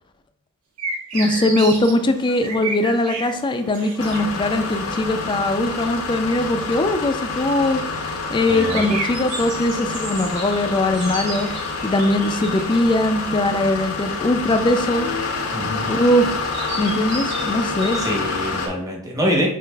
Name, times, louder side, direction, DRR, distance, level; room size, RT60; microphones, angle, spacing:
sound 1, 0.8-1.9 2.3-3.3 3.7-4.2 8.5-9.4, right 3 dB, 85° right, 1.0 m, -29 dB
voice 1, 1.1-7.8 8.3-11.5 11.8-15.1 15.9-16.4 16.8-18.0, left 1 dB, 20° left, 8 dB, 0.3 m, -20 dB
Insect, 1.1-18.1, right 1 dB, 55° right, 0.9 m, -37 dB
sound 2, 4.0-18.7, left 4 dB, 80° left, 0.7 m, -28 dB
voice 2, 8.5-9.0 15.5-15.9 18.0-19.5, equal, 15° right, -1 dB, 0.8 m, -25 dB
6.3 x 2.4 x 2.3 m, 0.69 s
head